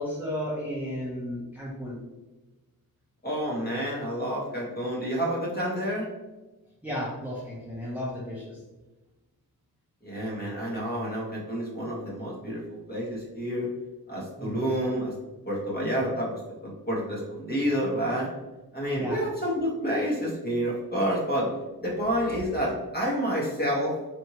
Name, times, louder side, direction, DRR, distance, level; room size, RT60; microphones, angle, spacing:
voice 1, 0.0-2.0 6.8-8.6 14.4-14.7 18.9-19.3, equal, 5° right, -7 dB, 0.7 m, -33 dB
voice 2, 3.2-6.1 10.0-13.7 14.1-15.1 15.5-18.3 18.7-21.5 21.8-24.2, equal, 25° left, -5 dB, 1.3 m, -29 dB
4.3 x 2.6 x 2.9 m, 1.1 s
wide cardioid pair, 135°, 38 cm